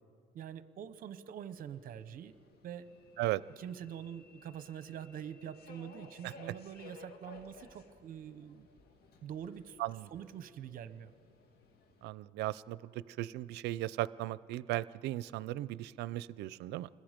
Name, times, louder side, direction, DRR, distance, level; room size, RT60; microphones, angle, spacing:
voice 1, 0.3-2.3 2.6-2.9 3.6-8.7 9.2-9.8 10.1-11.1, right 9 dB, 55° right, 14 dB, 0.9 m, -45 dB
Subway metro underground, 1.5-12.1, left 3 dB, 65° left, 2.0 m, -58 dB
voice 2, 12.0-16.9, right 16 dB, 85° right, 19 dB, 0.5 m, -37 dB
27.5 x 20.5 x 5.1 m, 2.3 s
cardioid pair, 110°, 17 cm